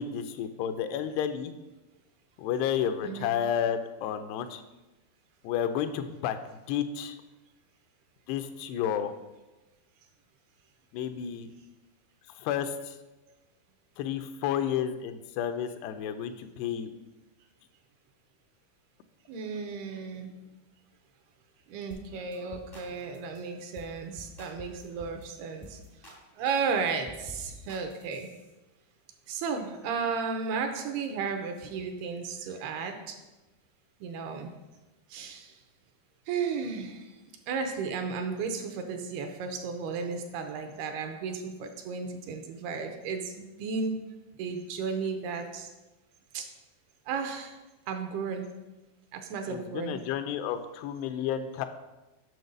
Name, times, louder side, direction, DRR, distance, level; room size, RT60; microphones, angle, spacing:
voice 1, 0.0-1.5 2.4-4.6 5.4-7.2 8.3-9.1 10.9-11.5 12.4-13.0 14.0-16.9 49.5-51.7, left 9 dB, 85° left, 9 dB, 2.6 m, -31 dB
voice 2, 3.0-3.3 19.3-20.3 21.7-25.8 26.4-28.3 29.3-33.2 34.0-34.5 35.1-35.5 36.3-37.1 37.5-44.0 44.4-45.7 46.3-46.5 47.1-47.6 47.9-48.5 49.1-50.0, right 5 dB, 80° right, 5 dB, 2.6 m, -34 dB
sound 1, 21.9-22.1 22.3-22.9 23.1-23.4 23.7-23.9 24.2-25.2 25.6-26.2 26.4-28.5, left 1 dB, 35° left, 0.3 m, -48 dB
7.9 x 6.3 x 5.3 m, 1.1 s
omnidirectional pair, 4.8 m